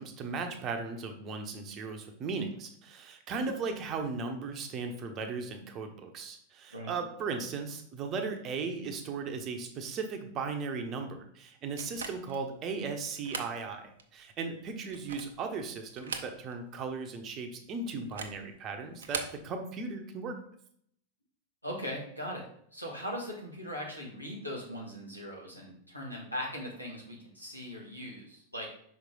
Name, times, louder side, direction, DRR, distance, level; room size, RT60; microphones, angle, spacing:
voice 1, 0.0-20.4, right 4 dB, 35° right, 5 dB, 0.9 m, -37 dB
sound 1, 11.8-12.4 13.1-13.6 14.0-14.1 14.8-15.4 15.9-16.7 17.0-17.1 18.0-18.4 18.9-19.4, right 5 dB, 65° right, 0.7 m, -40 dB
voice 2, 21.6-22.5 22.7-28.7, equal, 90° left, -2 dB, 1.8 m, -39 dB
5.7 x 4.9 x 3.8 m, 0.66 s
figure-of-eight pair, 90°, 0 cm